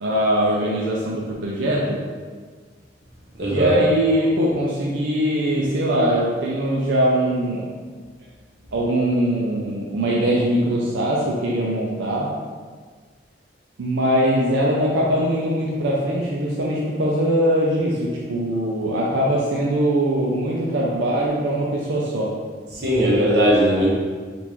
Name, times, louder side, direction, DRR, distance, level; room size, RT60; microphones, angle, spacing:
voice 1, 0.0-2.1 3.5-7.7 8.7-12.3 13.8-22.4, right 1 dB, 90° right, -5 dB, 0.5 m, -21 dB
voice 2, 3.4-3.8 22.7-23.9, equal, 60° right, -5 dB, 0.9 m, -18 dB
3.7 x 2.5 x 3.0 m, 1.5 s
head